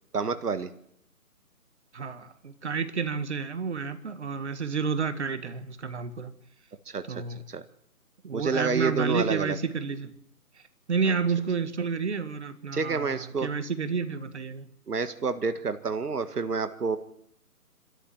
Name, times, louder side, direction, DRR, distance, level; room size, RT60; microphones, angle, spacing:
voice 1, 0.1-0.7 6.9-7.2 7.5-7.6 8.3-9.6 11.0-11.2 12.7-13.5 14.9-17.0, right 4 dB, 80° right, 10 dB, 1.8 m, -29 dB
voice 2, 1.9-6.3 7.1-7.4 8.2-10.1 10.6-10.7 10.9-14.7, right 5 dB, 45° right, 11 dB, 1.8 m, -30 dB
27.0 x 13.5 x 7.6 m, 0.73 s
figure-of-eight pair, 165°, 46 cm